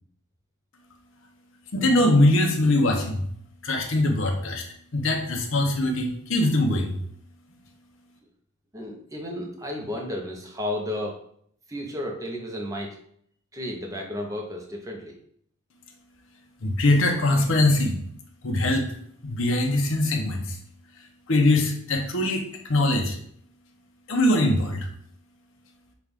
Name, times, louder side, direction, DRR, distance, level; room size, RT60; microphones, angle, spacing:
voice 1, 1.7-3.2 3.6-4.6 4.9-7.0 16.6-18.0 18.4-18.9 19.2-20.6 21.3-22.4 22.7-23.2 24.1-24.9, left 1 dB, 65° left, 2 dB, 0.8 m, -22 dB
voice 2, 8.7-11.2 11.7-13.0 13.5-15.1, left 1 dB, 15° right, 1 dB, 0.7 m, -33 dB
5.9 x 2.5 x 3.5 m, 0.65 s
head